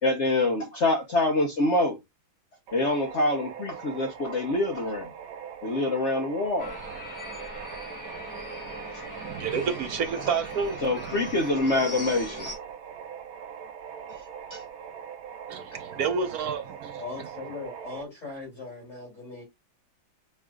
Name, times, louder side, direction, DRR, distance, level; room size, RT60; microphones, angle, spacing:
voice 1, 0.0-2.0 2.7-5.1 5.6-6.8 8.9-9.0 10.8-12.5 14.5-14.6, left 2 dB, 70° left, 0.6 m, -25 dB
sound 1, 2.7-18.0, right 8 dB, 80° right, 1.6 m, -41 dB
sound 2, 6.6-12.6, equal, 10° left, 2.3 m, -40 dB
voice 2, 9.2-11.1 15.5-17.0, right 5 dB, 60° right, 1.0 m, -30 dB
voice 3, 17.0-19.4, left 4 dB, 35° left, 3.2 m, -39 dB
4.9 x 4.7 x 2.3 m
omnidirectional pair, 2.2 m